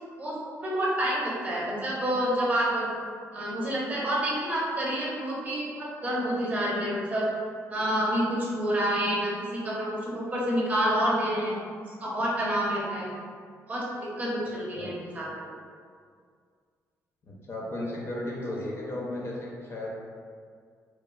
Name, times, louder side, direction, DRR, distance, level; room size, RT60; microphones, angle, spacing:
voice 1, 0.2-2.9 3.3-7.2 7.7-11.6 12.0-13.1 13.7-15.5, equal, 25° right, -6 dB, 0.7 m, -28 dB
voice 2, 17.3-19.9, left 1 dB, 45° left, -3 dB, 0.5 m, -35 dB
3.0 x 2.3 x 2.2 m, 2.1 s
cardioid pair, 110°, 6 cm